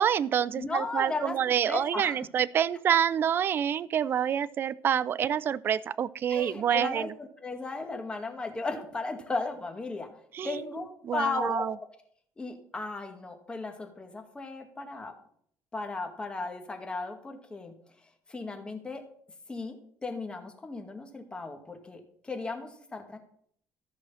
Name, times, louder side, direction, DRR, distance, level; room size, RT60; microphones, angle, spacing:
voice 1, 0.0-7.1 10.3-10.6 11.0-11.7, right 9 dB, 40° right, 18 dB, 0.4 m, -27 dB
voice 2, 0.6-2.2 6.3-10.1 10.4-11.7 12.4-15.1 15.7-17.7 18.3-19.0 19.5-19.8 20.0-23.2, left 3 dB, 15° left, 5 dB, 2.0 m, -35 dB
14.5 x 6.3 x 5.6 m, 0.62 s
cardioid pair, 130°, 6 cm